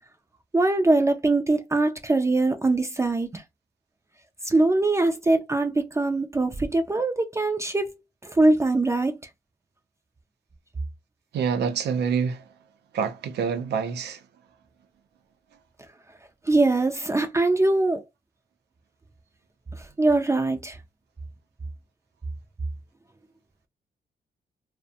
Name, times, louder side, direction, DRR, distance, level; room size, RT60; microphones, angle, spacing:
voice 1, 0.5-3.4 4.5-7.9 8.2-9.1 16.5-18.0 20.0-20.8, right 2 dB, 15° right, 0.4 m, -22 dB
voice 2, 11.3-12.4 12.9-14.2, right 6 dB, 90° right, 0.5 m, -26 dB
2.5 x 2.1 x 2.6 m
cardioid pair, 110°, 17 cm